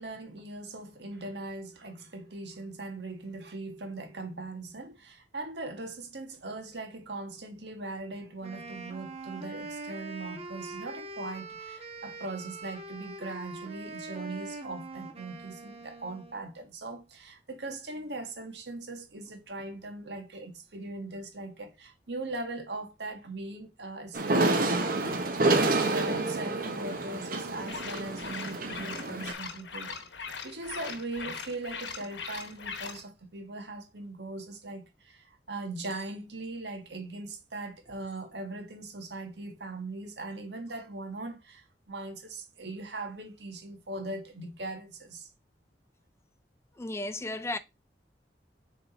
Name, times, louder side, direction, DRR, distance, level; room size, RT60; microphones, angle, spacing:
voice 1, 0.0-30.0 30.4-45.3, right 2 dB, 75° right, 1.7 m, -40 dB
Wind instrument woodwind instrument, 8.4-16.5, right 3 dB, 35° right, 1.2 m, -43 dB
sound 1, 24.1-29.3, right 2 dB, 55° right, 1.2 m, -28 dB
sound 2, 27.6-33.0, left 5 dB, 85° left, 1.0 m, -40 dB
voice 2, 46.8-47.6, left 2 dB, 15° left, 0.4 m, -34 dB
6.5 x 3.8 x 4.2 m
head